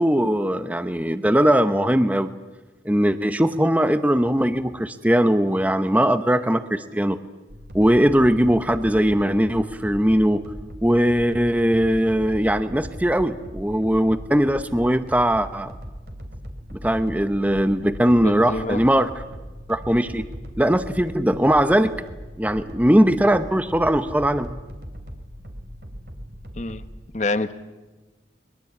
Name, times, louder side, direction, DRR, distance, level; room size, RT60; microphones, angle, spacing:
voice 1, 0.0-2.3 2.8-7.2 7.7-10.4 10.8-15.7 16.8-19.1 19.7-20.2 20.6-22.0 22.4-24.6, equal, 10° right, 10 dB, 0.8 m, -20 dB
sound 1, 7.5-26.9, equal, 60° right, 3.0 m, -39 dB
voice 2, 18.2-18.8 26.6-26.8 27.1-27.5, left 2 dB, 40° left, 11 dB, 1.0 m, -26 dB
22.5 x 21.5 x 8.4 m, 1.2 s
head